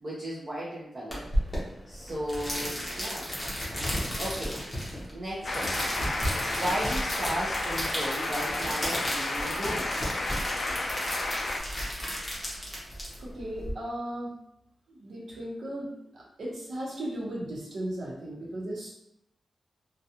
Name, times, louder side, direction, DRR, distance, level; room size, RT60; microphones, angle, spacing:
voice 1, 0.0-1.2 1.9-3.3 3.8-4.6 5.1-6.0 6.5-9.9, right 1 dB, 30° right, -7 dB, 0.6 m, -35 dB
sound 1, 1.1-13.7, equal, 15° left, 0.7 m, -33 dB
sound 2, 5.4-11.6, left 2 dB, 50° left, 0.3 m, -32 dB
voice 2, 13.2-14.3 14.9-18.9, right 1 dB, 75° right, -6 dB, 0.9 m, -36 dB
2.3 x 2.3 x 2.8 m, 0.79 s
wide cardioid pair, 160°, 0 cm